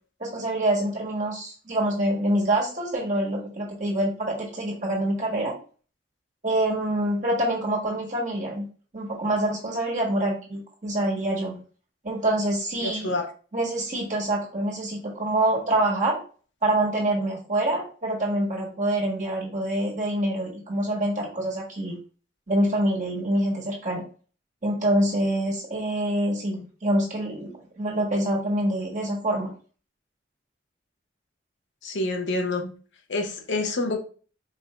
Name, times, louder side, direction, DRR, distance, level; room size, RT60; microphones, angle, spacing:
voice 1, 0.2-5.5 6.4-8.6 8.9-11.6 12.0-13.1 13.5-16.2 16.6-22.0 22.5-24.0 24.6-29.5, right 1 dB, 40° right, -3 dB, 1.5 m, -26 dB
voice 2, 12.8-13.3 31.8-32.7 33.1-34.0, left 2 dB, 80° left, 3 dB, 0.8 m, -27 dB
4.8 x 2.6 x 3.3 m, 0.40 s
head